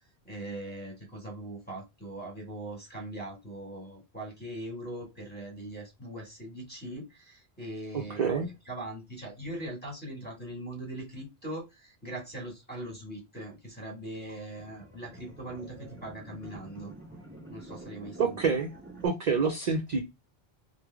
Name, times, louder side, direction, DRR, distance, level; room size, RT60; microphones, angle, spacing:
voice 1, 0.2-16.9 17.5-18.4, right 1 dB, 10° left, 1.5 m, -41 dB
voice 2, 7.9-8.5 18.2-18.7 19.0-20.0, right 5 dB, 50° right, 0.5 m, -27 dB
sound 1, 14.3-19.1, right 1 dB, 10° right, 1.2 m, -48 dB
3.2 x 2.2 x 3.3 m
omnidirectional pair, 1.1 m